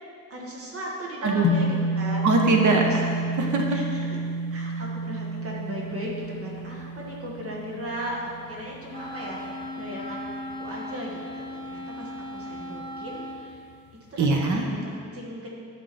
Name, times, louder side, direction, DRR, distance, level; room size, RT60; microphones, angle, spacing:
voice 1, 0.3-2.3 2.9-3.0 3.7-4.2 4.5-9.4 9.8-13.6 14.1-15.6, equal, 45° right, -3 dB, 1.7 m, -37 dB
sound 1, 1.4-9.9, right 1 dB, 45° left, 0.6 m, -30 dB
voice 2, 2.2-3.6 14.2-14.6, right 3 dB, 60° right, 1 dB, 1.3 m, -22 dB
Wind instrument woodwind instrument, 8.9-13.5, left 1 dB, 15° left, 1.1 m, -37 dB
11.0 x 6.4 x 4.3 m, 2.3 s
cardioid pair, 140°, 33 cm